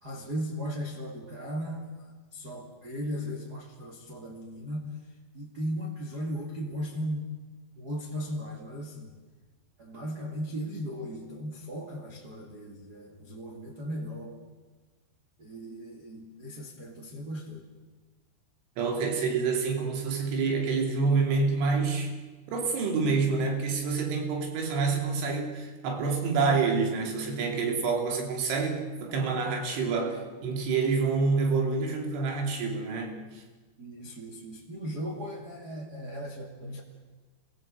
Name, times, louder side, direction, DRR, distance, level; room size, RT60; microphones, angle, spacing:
voice 1, 0.0-7.4 7.8-9.1 9.8-14.4 15.4-17.6 29.1-29.2 33.8-36.8, equal, 30° right, -1 dB, 2.0 m, -37 dB
voice 2, 18.8-22.1 22.5-33.1, right 4 dB, 85° right, 3 dB, 5.2 m, -27 dB
27.0 x 20.5 x 7.8 m, 1.3 s
omnidirectional pair, 5.3 m